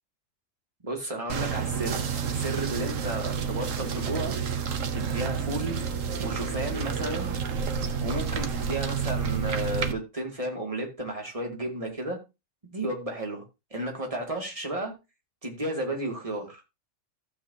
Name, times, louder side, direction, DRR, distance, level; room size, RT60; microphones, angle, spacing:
voice 1, 0.8-4.4 4.9-5.9 6.2-7.4 8.0-12.2 12.7-13.4 13.7-14.9 15.4-16.6, right 1 dB, 25° right, 1 dB, 2.4 m, -33 dB
sound 1, 1.3-9.9, right 6 dB, 80° right, 1.3 m, -30 dB
15.0 x 7.4 x 2.8 m, 0.25 s
omnidirectional pair, 1.3 m